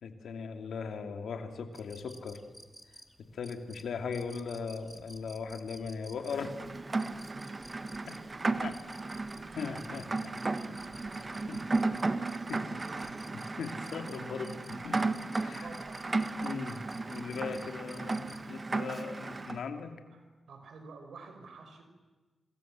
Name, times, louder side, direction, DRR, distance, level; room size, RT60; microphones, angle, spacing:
voice 1, 0.0-2.4 3.2-6.6 8.1-8.2 8.6-8.8 9.1-9.2 9.6-10.8 11.5-11.6 12.5-12.8 13.6-15.1 15.4-15.7 16.4-20.0, left 5 dB, 80° left, 6 dB, 2.7 m, -39 dB
sound 1, 1.7-18.4, equal, 5° right, 2.8 m, -54 dB
Rain, 6.3-19.6, right 3 dB, 35° right, 1.6 m, -35 dB
sound 2, 9.7-15.2, left 2 dB, 35° left, 3.9 m, -58 dB
voice 2, 12.7-13.3 15.3-16.0 20.1-20.2 20.5-21.8, right 4 dB, 80° right, 6 dB, 5.5 m, -49 dB
27.5 x 27.0 x 7.7 m, 1.3 s
cardioid pair, 60°, 0 cm